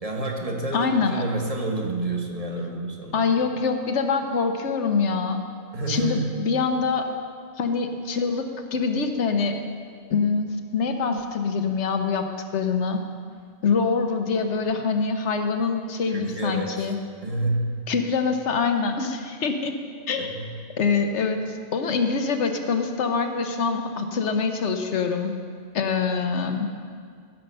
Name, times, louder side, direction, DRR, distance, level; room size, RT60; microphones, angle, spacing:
voice 1, 0.0-3.2 5.7-6.3 16.1-16.9 17.2-17.7 20.2-20.5, right 2 dB, 35° right, 1 dB, 1.1 m, -29 dB
voice 2, 0.7-1.2 3.1-5.4 5.9-7.1 7.6-9.6 10.1-12.3 12.5-13.0 13.6-17.0 17.9-19.8 20.1-20.3 20.8-25.4 25.7-26.7, left 5 dB, 80° left, 5 dB, 1.2 m, -24 dB
15.0 x 5.5 x 6.6 m, 2.1 s
omnidirectional pair, 1.2 m